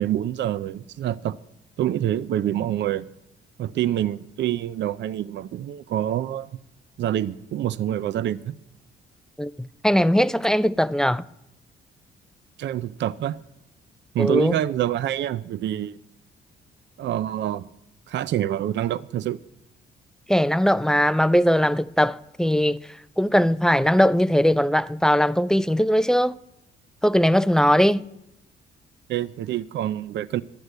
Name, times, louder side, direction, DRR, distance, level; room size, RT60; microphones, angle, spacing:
voice 1, 0.0-1.4 1.8-3.1 3.6-6.5 7.0-8.6 12.6-13.4 14.1-16.0 17.0-17.7 18.1-19.4 29.1-30.4, right 12 dB, 65° right, 0.5 m, -26 dB
voice 2, 9.4-11.3 14.2-14.6 20.3-26.4 27.0-28.0, equal, 5° left, 0.3 m, -20 dB
12.0 x 8.2 x 7.8 m
cardioid pair, 90°, 20 cm